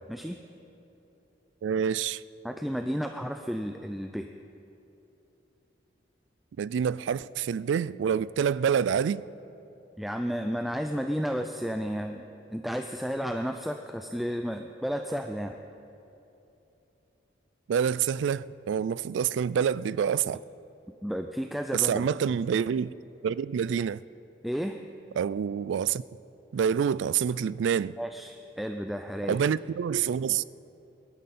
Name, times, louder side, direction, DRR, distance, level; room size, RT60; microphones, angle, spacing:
voice 1, 0.1-0.4 2.4-4.3 10.0-12.3 12.5-15.6 21.0-22.1 24.4-24.8 28.0-29.4, equal, ahead, 0.4 m, -32 dB
voice 2, 1.6-2.2 6.6-9.2 17.7-20.4 21.7-22.9 23.2-24.0 25.2-26.0 26.5-28.0 29.3-30.4, right 7 dB, 85° right, 0.3 m, -27 dB
21.5 x 12.0 x 4.2 m
head